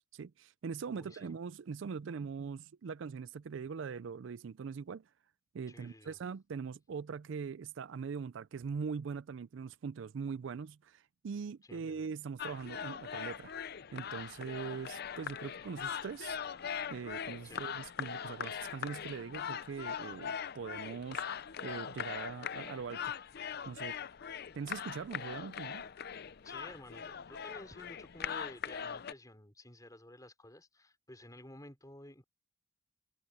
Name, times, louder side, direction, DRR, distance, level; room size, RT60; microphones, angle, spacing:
voice 1, 0.0-5.1 5.5-13.5 13.9-16.4 16.9-21.2 21.6-23.1 23.6-24.0 24.5-25.8, right 6 dB, 65° right, 0.4 m, -42 dB
voice 2, 0.9-1.4 5.7-6.2 11.6-12.0 17.4-17.7 26.4-32.2, left 1 dB, 20° left, 4.9 m, -52 dB
sound 1, 12.4-29.1, left 7 dB, 50° left, 0.6 m, -41 dB
head